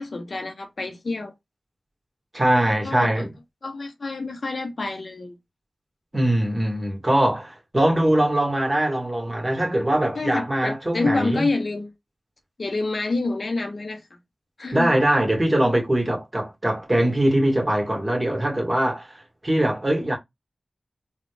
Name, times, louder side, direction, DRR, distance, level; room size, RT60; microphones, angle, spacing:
voice 1, 0.0-1.3 2.8-3.3 3.6-5.4 10.1-11.9 12.6-14.0 14.6-14.9, left 3 dB, 65° left, 0.8 m, -27 dB
voice 2, 2.3-3.3 6.1-11.5 14.7-20.2, right 1 dB, 30° right, 1.7 m, -22 dB
3.9 x 2.3 x 3.3 m
cardioid pair, 40°, 0 cm